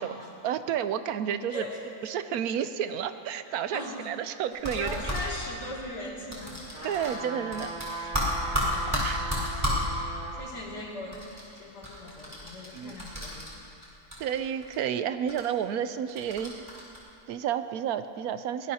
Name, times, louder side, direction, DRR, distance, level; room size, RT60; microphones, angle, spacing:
voice 1, 0.4-1.6 2.0-5.0 6.8-8.1 8.9-9.3 12.7-12.9 14.2-16.6 17.3-18.7, right 9 dB, 75° right, 11 dB, 1.0 m, -31 dB
voice 2, 1.5-2.2 3.4-7.0 8.7-9.0 9.6-9.9 10.3-11.2 11.5-13.5, left 1 dB, 90° left, -4 dB, 3.0 m, -40 dB
sound 1, 4.5-5.2 6.3-7.2 7.5-9.8 11.1-13.8 14.1-14.8 15.3-15.4 16.1-17.0, equal, 15° right, 3.9 m, -32 dB
sound 2, 6.7-10.4 10.9-11.0, right 2 dB, 30° left, 3.2 m, -38 dB
22.0 x 19.0 x 2.8 m, 2.8 s
omnidirectional pair, 1.7 m